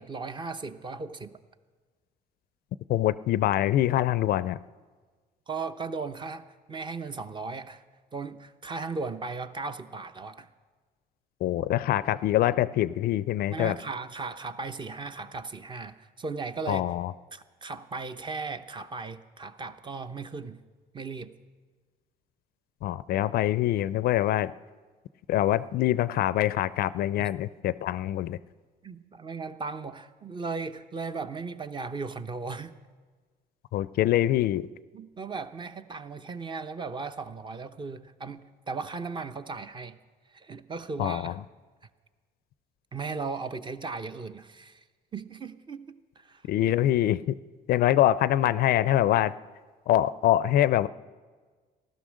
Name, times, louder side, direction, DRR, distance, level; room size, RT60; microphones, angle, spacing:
voice 1, 0.0-1.3 5.5-7.8 8.1-10.5 13.5-16.9 17.3-20.6 20.9-21.4 28.8-32.8 34.9-40.0 40.3-41.4 42.9-44.8 45.1-46.4, right 4 dB, 30° right, 11 dB, 0.7 m, -37 dB
voice 2, 2.9-4.6 11.4-13.8 16.7-17.1 22.8-24.5 25.3-28.4 33.7-34.6 41.0-41.3 46.5-47.3 47.7-49.3 49.9-50.9, left 13 dB, 65° left, 17 dB, 0.4 m, -24 dB
15.5 x 12.5 x 6.3 m, 1.4 s
cardioid pair, 110°, 17 cm